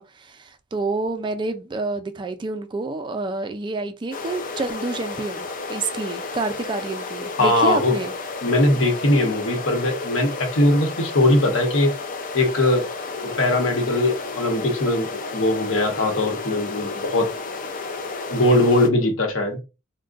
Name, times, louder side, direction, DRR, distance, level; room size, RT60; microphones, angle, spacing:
voice 1, 0.0-8.1, right 3 dB, 25° right, 0.3 m, -28 dB
sound 1, 4.1-18.9, left 3 dB, 45° left, 0.5 m, -32 dB
voice 2, 7.4-8.0 8.4-11.9 12.3-12.9 13.2-17.3 18.3-19.6, left 1 dB, 80° left, 1.0 m, -20 dB
2.4 x 2.2 x 3.8 m
head